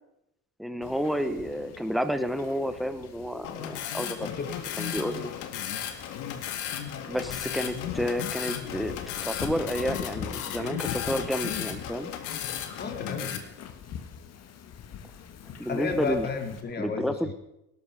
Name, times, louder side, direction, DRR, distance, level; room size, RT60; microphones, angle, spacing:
voice 1, 0.6-4.2 4.8-5.3 7.1-8.9 9.2-12.1 15.6-16.3 16.8-17.3, equal, ahead, 10 dB, 1.1 m, -30 dB
Wind / Ocean, 0.8-16.6, left 7 dB, 55° left, 1.8 m, -43 dB
sound 1, 3.4-13.4, left 10 dB, 80° left, 2.0 m, -35 dB
voice 2, 4.2-4.6 12.8-13.4 15.7-17.3, left 5 dB, 35° left, 5 dB, 2.8 m, -32 dB
18.5 x 12.0 x 4.9 m, 0.86 s
cardioid pair, 130°, 31 cm